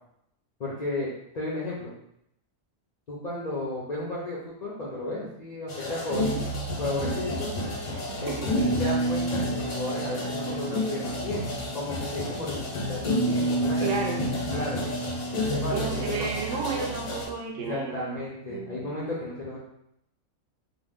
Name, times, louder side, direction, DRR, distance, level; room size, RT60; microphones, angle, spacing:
voice 1, 0.6-1.1 1.3-1.9 3.1-6.2 6.8-7.5 8.2-11.4 11.7-14.8 15.5-16.3 17.5-19.6, left 1 dB, 60° left, -5 dB, 0.4 m, -33 dB
sound 1, 5.7-17.2, equal, 85° left, 1.2 m, -29 dB
voice 2, 6.1-6.4 8.3-8.7 13.8-14.2 15.7-18.2 18.5-18.8, right 5 dB, 70° right, -1 dB, 0.9 m, -32 dB
2.8 x 2.0 x 3.5 m, 0.77 s
omnidirectional pair, 1.4 m